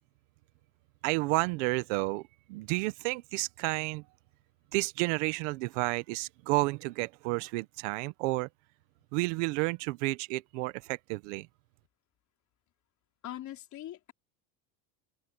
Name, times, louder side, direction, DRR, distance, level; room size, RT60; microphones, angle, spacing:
voice 1, 1.0-4.0 4.7-8.5 9.1-11.5, right 23 dB, 85° right, 1.4 m, -31 dB
voice 2, 13.2-14.1, left 13 dB, 50° left, 4.1 m, -41 dB
supercardioid pair, 110°, 36 cm